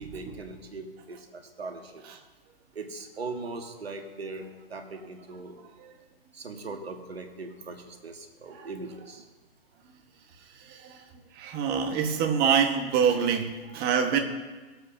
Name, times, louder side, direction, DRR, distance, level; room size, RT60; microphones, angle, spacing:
voice 1, 0.0-2.0 2.7-5.5 6.3-9.3, right 3 dB, 85° right, 5 dB, 1.5 m, -40 dB
voice 2, 10.6-11.0 11.3-14.2, right 7 dB, 30° right, 5 dB, 1.4 m, -26 dB
21.0 x 7.9 x 2.7 m, 1.3 s
hypercardioid pair, 115°, 30 cm